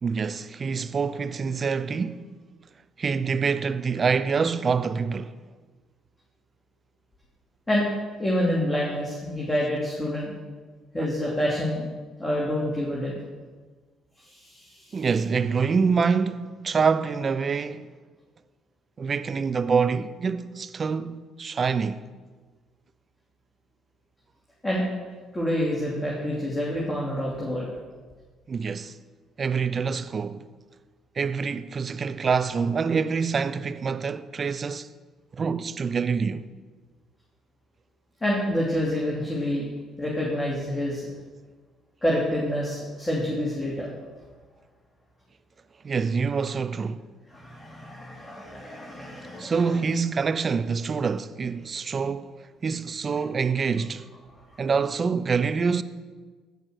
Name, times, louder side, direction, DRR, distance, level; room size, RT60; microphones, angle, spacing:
voice 1, 0.0-2.3 3.0-5.4 14.9-17.9 19.0-22.0 28.5-29.0 29.4-30.5 31.2-34.9 35.3-36.5 45.8-47.0 49.4-52.3 52.6-54.1 54.6-55.8, right 5 dB, 40° right, 0.6 m, -26 dB
voice 2, 8.2-10.4 10.9-11.9 12.2-13.2 14.2-15.0 24.6-24.8 25.3-27.7 38.2-39.7 40.0-41.0 42.0-43.9 47.3-49.6, equal, 15° left, 2.8 m, -27 dB
16.0 x 5.6 x 6.5 m
supercardioid pair, 60°, 0 cm